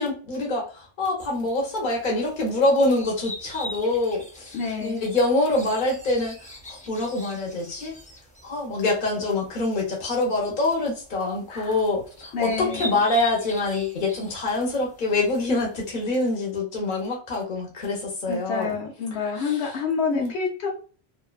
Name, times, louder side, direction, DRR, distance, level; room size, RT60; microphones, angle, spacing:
voice 1, 0.0-6.4 6.7-8.0 8.4-18.7 19.1-19.6 20.1-20.3, left 2 dB, 50° left, -1 dB, 1.0 m, -25 dB
sound 1, 1.2-16.0, left 1 dB, 15° left, 0.3 m, -43 dB
voice 2, 4.5-5.0 11.5-11.8 12.3-13.0 18.3-20.7, left 5 dB, 85° left, 0 dB, 0.9 m, -28 dB
2.6 x 2.2 x 2.3 m, 0.38 s
omnidirectional pair, 1.1 m